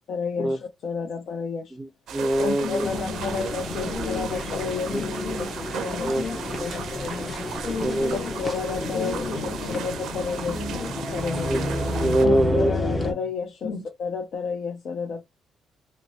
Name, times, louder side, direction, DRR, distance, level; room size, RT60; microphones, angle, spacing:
voice 1, 0.1-1.8 2.4-5.1 5.7-6.2 6.6-7.5 8.1-9.2 9.8-10.6 11.1-11.6 12.2-13.7 14.0-15.2, left 5 dB, 65° left, 0.5 m, -31 dB
voice 2, 1.7-2.9 4.9-5.0 6.0-6.3 7.8-8.2 11.5-12.7, right 1 dB, 20° right, 0.5 m, -24 dB
sound 1, 2.1-12.3, right 8 dB, 75° right, 0.4 m, -36 dB
voice 3, 2.6-3.4 3.7-4.3 4.8-5.4 5.9-6.4 7.6-8.3 8.9-10.9 13.6-13.8, left 5 dB, 85° left, 1.1 m, -35 dB
sound 2, 2.8-13.1, left 2 dB, 25° left, 0.7 m, -31 dB
3.1 x 2.0 x 2.7 m
cardioid pair, 90°, 0 cm